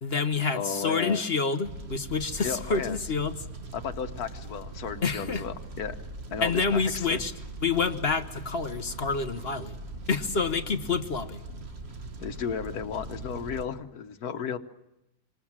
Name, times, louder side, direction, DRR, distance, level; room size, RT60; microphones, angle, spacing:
voice 1, 0.0-3.3 5.0-5.4 6.4-7.3 7.6-9.7 10.1-11.4, left 4 dB, 45° left, 9 dB, 1.3 m, -28 dB
voice 2, 0.5-1.2 2.4-3.0 3.7-5.9 6.3-7.2 12.2-14.6, left 7 dB, 75° left, 7 dB, 1.6 m, -34 dB
Fire, 1.6-13.6, right 2 dB, 45° right, 1.8 m, -41 dB
26.5 x 26.0 x 7.4 m, 0.90 s
omnidirectional pair, 1.6 m